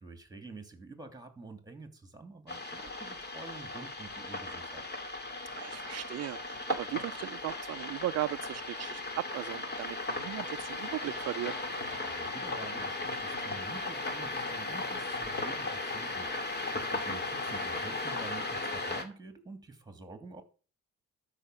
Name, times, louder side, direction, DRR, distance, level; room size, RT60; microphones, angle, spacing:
voice 1, 0.0-4.9 12.0-20.4, right 3 dB, 15° right, 2.7 m, -48 dB
sound 1, 2.5-19.0, left 2 dB, 35° left, 2.5 m, -36 dB
voice 2, 5.6-11.6 16.9-17.2, right 14 dB, 55° right, 0.4 m, -37 dB
12.5 x 5.8 x 6.7 m
cardioid pair, 90°, 30 cm